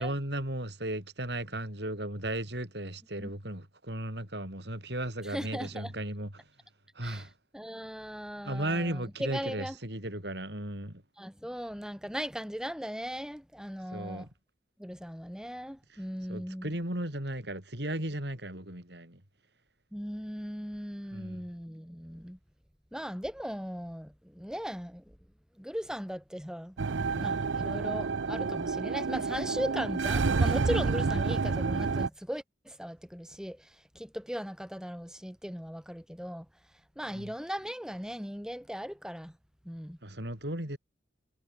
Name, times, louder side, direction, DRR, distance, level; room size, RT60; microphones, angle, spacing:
voice 1, 0.0-6.4 6.9-7.3 8.4-11.0 13.9-14.3 16.3-19.2 21.1-21.4 37.1-37.3 40.0-40.8, right 1 dB, 65° right, 6.4 m, -35 dB
voice 2, 5.2-5.9 7.0-7.3 7.5-9.7 11.2-14.3 14.8-16.7 19.9-22.4 22.9-25.0 25.6-26.7 27.0-33.7 34.0-36.5 37.0-39.3 39.7-40.0, equal, 5° right, 4.0 m, -38 dB
sound 1, 26.8-32.1, right 4 dB, 90° right, 0.7 m, -29 dB
head